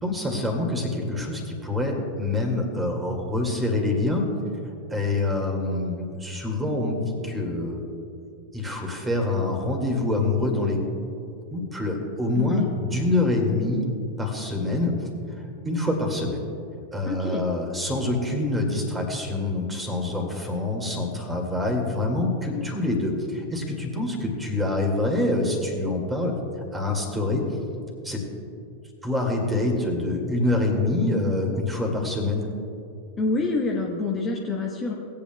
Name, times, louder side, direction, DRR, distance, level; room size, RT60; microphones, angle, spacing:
voice 1, 0.0-4.3 4.9-8.0 8.5-10.8 11.5-13.8 14.2-15.1 15.4-16.4 16.9-26.4 26.7-27.5 28.0-28.3 29.0-32.5, left 2 dB, 10° right, 2 dB, 2.0 m, -26 dB
voice 2, 12.4-12.7 17.1-17.4 33.2-34.9, left 3 dB, 20° left, -2 dB, 1.1 m, -27 dB
19.5 x 8.6 x 2.2 m, 2.5 s
figure-of-eight pair, 90°, 0 cm